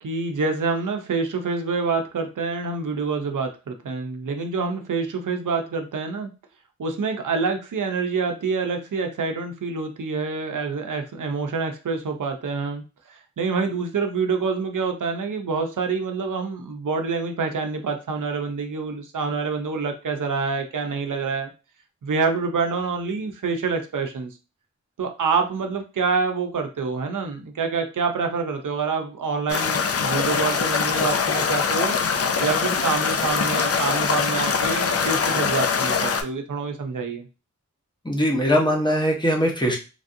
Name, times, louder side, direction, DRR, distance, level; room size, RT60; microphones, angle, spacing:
voice 1, 0.0-6.3 6.8-12.8 13.1-21.5 22.0-24.3 25.0-32.0 32.4-37.3, right 4 dB, 90° right, 4 dB, 0.6 m, -26 dB
sound 1, 29.5-36.2, left 6 dB, 50° left, 0.4 m, -23 dB
voice 2, 38.0-39.8, equal, 15° left, 0 dB, 0.9 m, -21 dB
3.3 x 2.5 x 2.6 m, 0.31 s
wide cardioid pair, 60°, 30 cm